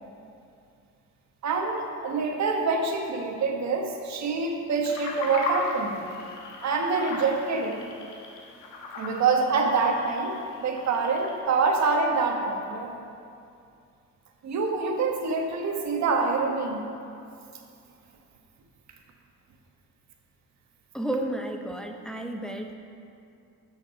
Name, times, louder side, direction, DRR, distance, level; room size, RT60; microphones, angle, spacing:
voice 1, 1.4-6.0 6.6-7.9 9.0-12.9 14.4-16.8, right 4 dB, 65° right, 2 dB, 1.3 m, -26 dB
sound 1, 4.8-11.4, left 3 dB, 85° left, 1.4 m, -37 dB
voice 2, 20.9-22.7, right 1 dB, ahead, 3 dB, 0.7 m, -32 dB
8.5 x 6.5 x 5.6 m, 2.5 s
cardioid pair, 90°, 30 cm